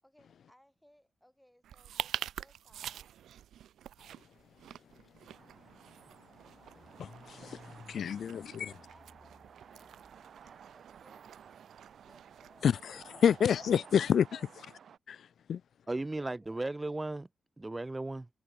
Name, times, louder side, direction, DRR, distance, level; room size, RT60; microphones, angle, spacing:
voice 1, 0.0-3.1 7.8-11.6 12.0-13.9 14.3-14.5 15.9-16.6, equal, 5° left, 7.1 m, -65 dB
sound 1, 1.6-13.8, right 10 dB, 85° right, 2.7 m, -47 dB
Car / Engine starting, 5.1-5.2 5.5-10.7, left 3 dB, 20° left, 1.8 m, -58 dB
sound 2, 5.3-15.0, right 8 dB, 55° right, 3.2 m, -55 dB
voice 2, 6.7-8.7 12.6-14.5 15.1-15.6, left 8 dB, 60° left, 0.4 m, -29 dB
voice 3, 15.9-17.3 17.6-18.3, right 2 dB, 15° right, 0.6 m, -35 dB
wide cardioid pair, 155°, 0 cm